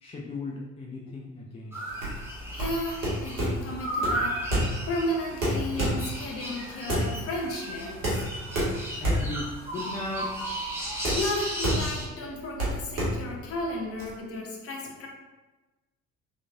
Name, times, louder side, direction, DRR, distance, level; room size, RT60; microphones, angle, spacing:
voice 1, 0.0-1.7 9.0-10.4, left 2 dB, 15° left, -3 dB, 0.5 m, -36 dB
sound 1, 1.7-12.1, right 1 dB, 5° right, 1.0 m, -35 dB
sound 2, 1.9-14.1, right 1 dB, 75° right, 1.2 m, -30 dB
voice 2, 2.5-8.3 10.8-15.1, left 1 dB, 35° left, 0 dB, 0.9 m, -34 dB
4.1 x 3.1 x 2.7 m, 1.1 s
figure-of-eight pair, 55°, 39 cm